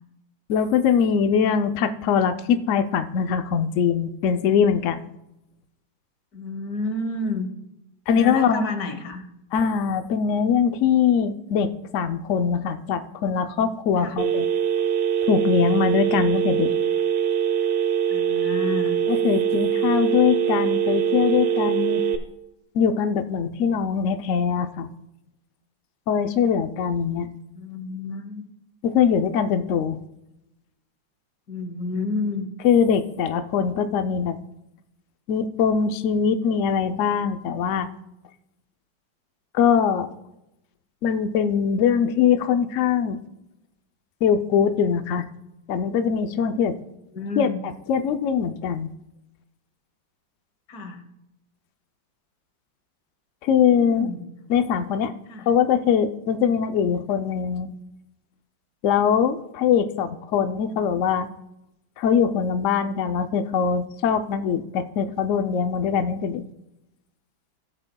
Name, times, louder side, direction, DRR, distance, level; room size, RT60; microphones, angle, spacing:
voice 1, 0.5-5.1 8.1-8.6 9.5-14.5 15.2-16.7 19.1-22.0 22.7-24.9 26.1-27.3 28.8-30.0 32.6-34.4 35.3-37.9 39.5-40.1 41.0-43.2 44.2-45.3 45.7-46.8 47.4-48.9 53.4-54.1 54.5-55.1 55.5-57.7 58.8-61.3 62.0-66.4, left 7 dB, 85° left, 9 dB, 0.6 m, -22 dB
voice 2, 6.3-7.5 8.1-9.2 14.0-14.2 18.1-19.0 27.5-28.4 31.5-32.5 47.1-47.6 50.7-51.0 53.7-54.2 55.3-55.5, left 2 dB, 55° left, 8 dB, 1.5 m, -30 dB
Telephone, 14.2-22.2, right 8 dB, 85° right, 1.7 m, -23 dB
17.0 x 7.9 x 2.2 m, 0.87 s
omnidirectional pair, 2.1 m